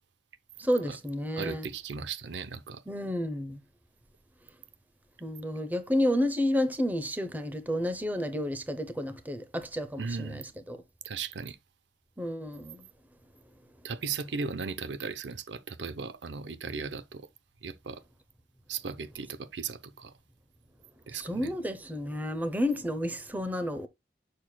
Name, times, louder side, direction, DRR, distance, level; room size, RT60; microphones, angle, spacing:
voice 1, 0.6-1.7 2.9-3.6 5.2-10.8 12.2-12.9 21.1-23.9, left 1 dB, 10° right, 0.7 m, -31 dB
voice 2, 1.4-2.8 10.0-10.4 11.1-11.6 13.8-17.3 17.6-18.0 18.7-20.1 21.1-21.5, right 5 dB, 85° right, 0.6 m, -37 dB
7.5 x 6.5 x 2.2 m
head